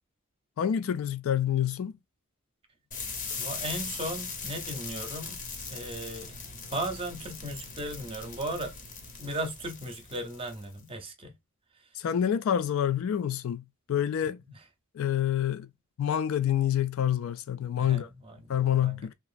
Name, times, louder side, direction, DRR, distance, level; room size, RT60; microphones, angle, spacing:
voice 1, 0.6-2.0 12.0-14.4 14.9-15.7 16.0-18.1 18.5-19.1, left 9 dB, 65° left, 0.3 m, -27 dB
sound 1, 2.9-10.8, left 4 dB, 40° left, 0.7 m, -40 dB
voice 2, 3.4-5.4 5.7-6.4 6.7-8.7 9.2-11.3 17.8-18.3 18.8-18.9, right 1 dB, 25° right, 0.7 m, -36 dB
3.0 x 2.5 x 2.4 m
head